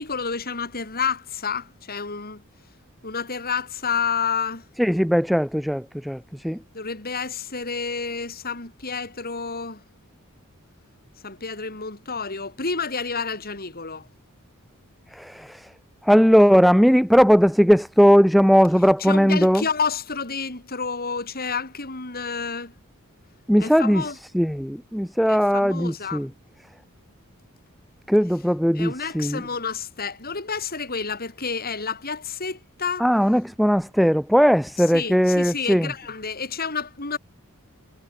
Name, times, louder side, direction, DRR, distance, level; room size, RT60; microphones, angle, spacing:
voice 1, 0.0-2.4 3.0-4.6 6.7-9.8 11.2-14.1 19.0-22.7 23.6-24.2 25.3-26.3 28.7-33.1 34.9-37.2, left 5 dB, 45° left, 5.9 m, -29 dB
voice 2, 4.8-6.6 15.1-15.6 16.0-19.6 23.5-24.0 24.3-26.3 28.1-29.4 33.0-35.9, equal, ahead, 0.4 m, -18 dB
head